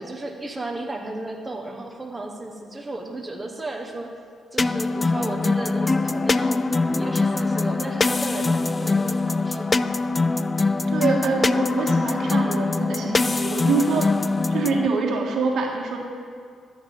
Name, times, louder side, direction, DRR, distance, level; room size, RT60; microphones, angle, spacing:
voice 1, 0.0-4.1 4.5-6.6 6.9-10.0, right 2 dB, 20° right, 2 dB, 1.3 m, -34 dB
sound 1, 4.6-14.9, left 3 dB, 30° left, 0.4 m, -23 dB
voice 2, 10.9-14.1 14.5-16.0, right 4 dB, 70° right, 1 dB, 1.7 m, -25 dB
13.5 x 7.7 x 5.4 m, 2.1 s
supercardioid pair, 70°, 0 cm